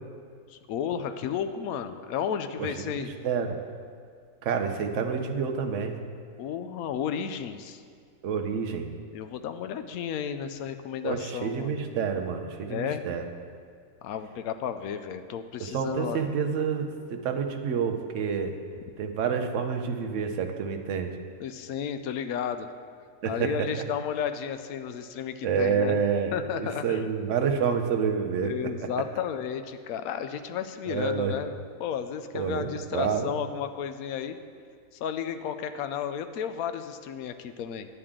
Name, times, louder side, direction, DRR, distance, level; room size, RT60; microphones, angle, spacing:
voice 1, 0.5-3.1 6.4-7.8 9.1-11.8 12.7-13.0 14.0-16.2 21.4-22.7 23.2-26.0 26.3-27.1 28.4-34.4 35.0-37.9, left 8 dB, 75° left, 9 dB, 1.0 m, -33 dB
voice 2, 3.2-3.6 4.4-5.9 8.2-8.9 11.0-13.2 15.6-18.5 19.0-21.1 23.2-23.8 25.4-28.5 28.8-28.9 30.9-31.3 32.3-33.3, right 6 dB, 60° right, 5 dB, 1.0 m, -28 dB
10.0 x 9.7 x 3.7 m, 2.2 s
omnidirectional pair, 1.7 m